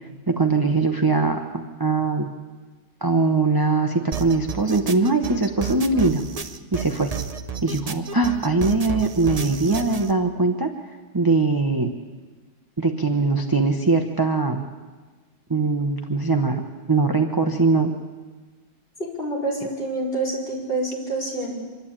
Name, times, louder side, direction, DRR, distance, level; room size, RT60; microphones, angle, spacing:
voice 1, 0.3-2.3 3.0-6.2 6.7-7.1 7.6-10.7 11.1-11.9 12.8-14.6 15.5-16.6 16.9-17.9, right 3 dB, 20° right, 4 dB, 0.6 m, -21 dB
sound 1, 4.1-10.1, right 6 dB, 70° right, 0.3 m, -31 dB
voice 2, 19.2-21.5, right 2 dB, 30° left, -5 dB, 5.7 m, -27 dB
25.5 x 12.0 x 8.7 m, 1.4 s
omnidirectional pair, 2.0 m